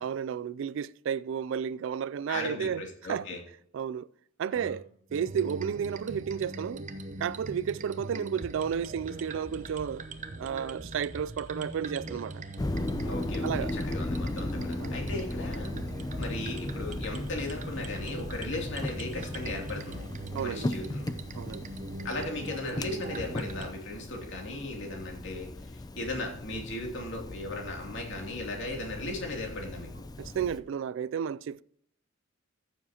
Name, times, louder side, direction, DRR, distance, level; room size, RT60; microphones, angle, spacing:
voice 1, 0.0-3.3 3.7-4.1 4.4-6.8 7.2-10.0 10.4-12.4 13.4-13.7 14.8-15.0 20.3-20.7 21.4-21.7 30.2-31.6, right 7 dB, 70° right, 0.3 m, -32 dB
voice 2, 2.3-3.4 4.5-4.8 13.0-15.7 16.2-20.1 20.4-21.1 22.0-30.0, left 2 dB, 65° left, 2.7 m, -37 dB
sound 1, 5.1-23.7, right 2 dB, 40° right, 0.8 m, -41 dB
sound 2, 12.6-30.6, left 1 dB, 20° left, 0.5 m, -37 dB
14.5 x 7.2 x 2.9 m
head